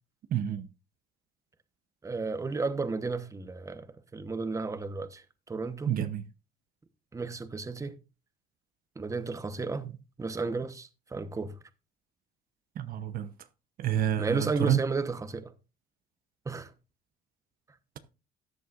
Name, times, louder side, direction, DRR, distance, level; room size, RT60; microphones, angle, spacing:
voice 1, 0.3-0.7 5.9-6.2 12.8-13.3 13.8-14.8, right 10 dB, 60° right, 0.9 m, -28 dB
voice 2, 2.0-5.9 7.1-8.0 9.0-9.9 10.2-11.6 14.2-15.5 16.4-16.7, right 3 dB, 20° right, 1.0 m, -33 dB
14.0 x 10.0 x 2.5 m
cardioid pair, 110°, 17 cm